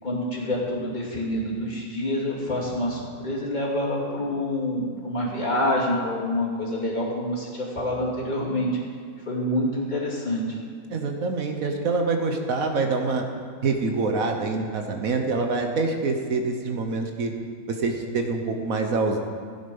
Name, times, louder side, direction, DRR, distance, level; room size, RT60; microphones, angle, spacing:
voice 1, 0.0-8.7 9.2-10.4, left 1 dB, 30° left, -5 dB, 2.9 m, -27 dB
voice 2, 10.9-13.2 13.6-17.3 17.7-19.2, right 3 dB, 70° right, 4 dB, 1.4 m, -25 dB
15.5 x 9.6 x 5.4 m, 2.1 s
omnidirectional pair, 1.5 m